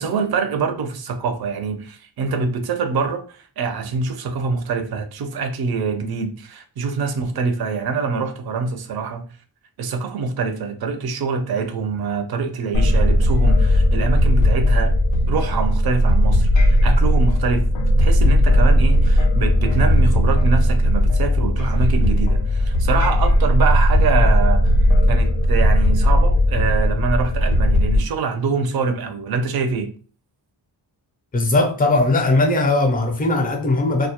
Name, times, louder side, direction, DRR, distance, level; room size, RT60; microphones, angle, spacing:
voice 1, 0.0-9.3 9.8-14.9 15.3-17.7 18.0-24.8 25.1-29.9, right 5 dB, 55° right, 0.5 m, -24 dB
sound 1, 12.7-28.0, equal, 85° left, 0.5 m, -16 dB
voice 2, 31.3-34.1, left 2 dB, 20° left, 0.4 m, -18 dB
2.2 x 2.0 x 2.8 m
wide cardioid pair, 130°, 45 cm